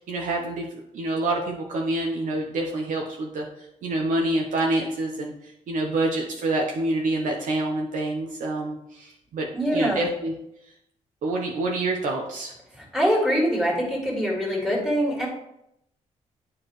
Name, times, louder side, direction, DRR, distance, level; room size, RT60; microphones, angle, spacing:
voice 1, 0.1-0.7 0.9-9.5 9.7-10.3 11.2-12.5, right 2 dB, 80° right, 0 dB, 0.9 m, -27 dB
voice 2, 9.5-10.0 12.8-15.3, equal, 5° right, -4 dB, 2.2 m, -24 dB
9.8 x 4.8 x 3.1 m, 0.81 s
wide cardioid pair, 140°, 13 cm